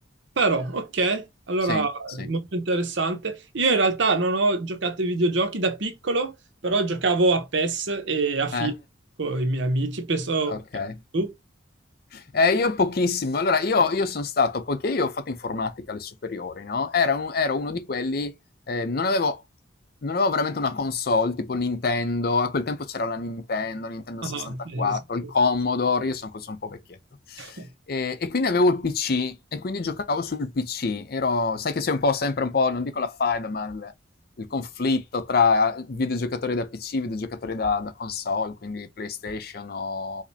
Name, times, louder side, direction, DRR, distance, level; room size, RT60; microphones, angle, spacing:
voice 1, 0.4-6.3 6.6-8.7 9.2-10.6 11.1-11.3 24.2-25.0 27.4-27.7, right 3 dB, 70° right, 0.8 m, -25 dB
voice 2, 10.5-11.0 12.1-18.3 18.7-19.4 20.0-27.0 27.3-27.6 27.9-33.9 34.4-40.2, left 4 dB, 50° left, 0.5 m, -26 dB
4.8 x 2.1 x 2.7 m
head